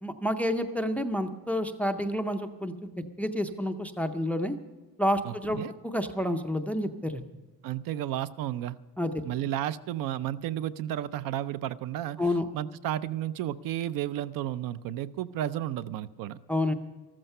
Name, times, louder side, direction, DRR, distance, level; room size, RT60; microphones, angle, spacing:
voice 1, 0.0-2.9 3.2-4.6 5.0-5.6 5.8-7.2 9.0-9.2 12.2-12.5 16.5-16.7, left 1 dB, 5° left, 8 dB, 0.4 m, -29 dB
voice 2, 5.2-5.7 7.6-8.8 9.2-12.2 12.5-16.4, right 12 dB, 55° right, 15 dB, 0.6 m, -32 dB
14.0 x 14.0 x 5.5 m, 1.2 s
cardioid pair, 170°, 40 cm